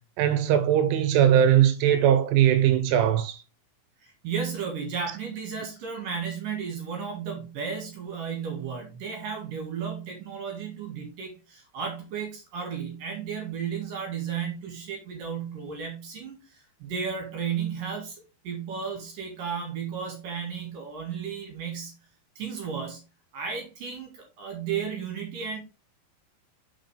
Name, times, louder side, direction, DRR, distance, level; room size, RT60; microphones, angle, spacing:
voice 1, 0.2-3.4, right 10 dB, 80° right, 3.2 m, -20 dB
voice 2, 4.0-21.9 22.4-23.0 23.3-25.6, right 6 dB, 55° right, 2.9 m, -34 dB
6.5 x 6.4 x 3.3 m
omnidirectional pair, 5.8 m